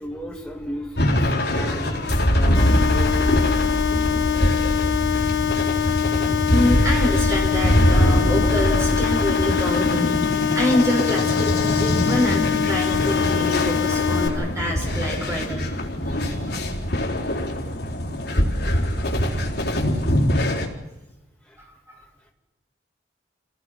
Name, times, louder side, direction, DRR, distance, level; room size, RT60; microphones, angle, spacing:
voice 1, 0.0-2.0 2.3-3.6 16.5-16.6 18.6-18.8 19.5-19.6 21.4-21.6, equal, 5° left, 0 dB, 2.7 m, -36 dB
sound 1, 1.0-20.7, left 1 dB, 70° left, 3.9 m, -22 dB
sound 2, 2.5-14.3, left 10 dB, 90° left, 4.2 m, -24 dB
voice 2, 6.5-10.2 10.5-15.7 16.1-16.4 21.9-22.0, left 1 dB, 15° right, -2 dB, 6.6 m, -26 dB
28.5 x 18.5 x 5.9 m, 1.0 s
head